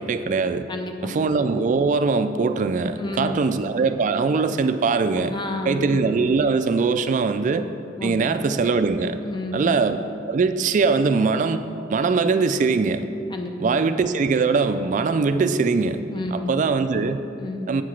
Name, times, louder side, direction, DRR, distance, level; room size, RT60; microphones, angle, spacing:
voice 1, 0.0-0.7 1.0-5.3 5.7-7.7 8.0-9.2 9.5-10.0 10.3-11.6 11.9-13.1 13.6-16.0 16.3-17.2 17.7-17.8, right 4 dB, 45° right, 10 dB, 0.3 m, -21 dB
voice 2, 0.7-1.3 3.0-3.6 5.2-6.0 8.0-8.4 9.2-9.8 13.3-13.8 16.1-16.7 17.4-17.7, left 2 dB, 25° left, 4 dB, 0.5 m, -31 dB
8.0 x 4.8 x 5.8 m, 2.5 s
head